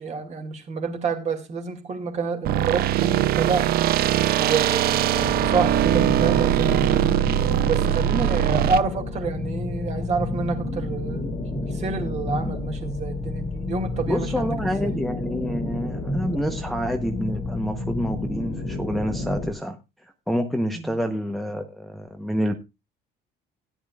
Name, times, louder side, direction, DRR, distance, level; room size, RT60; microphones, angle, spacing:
voice 1, 0.0-3.7 4.4-7.2 7.6-11.3 11.7-14.9 20.7-20.9, right 4 dB, 40° right, 2.4 m, -28 dB
sound 1, 2.4-8.8, right 12 dB, 55° right, 0.5 m, -21 dB
sound 2, 5.1-19.5, left 2 dB, 35° left, 1.9 m, -30 dB
voice 2, 14.1-19.8 20.3-22.5, equal, ahead, 0.9 m, -28 dB
16.5 x 10.5 x 2.4 m
cardioid pair, 155°, 18 cm